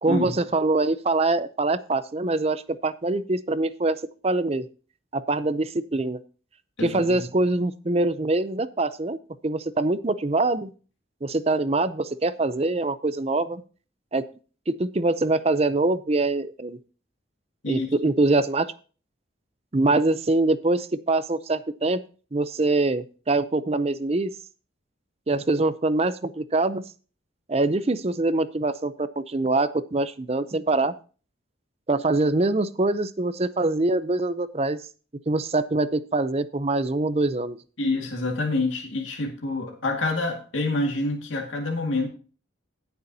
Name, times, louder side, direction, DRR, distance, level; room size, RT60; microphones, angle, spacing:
voice 1, 0.0-4.7 5.1-6.2 6.8-9.2 9.4-10.7 11.2-13.6 14.1-14.3 14.7-16.8 17.7-18.7 19.7-22.0 22.3-24.3 25.3-26.8 27.5-30.9 31.9-34.8 35.3-37.6, right 2 dB, 30° right, 14 dB, 0.5 m, -24 dB
voice 2, 6.8-7.3 17.6-17.9 37.8-42.1, left 2 dB, 85° left, 1 dB, 2.0 m, -27 dB
17.0 x 6.9 x 2.8 m, 0.38 s
head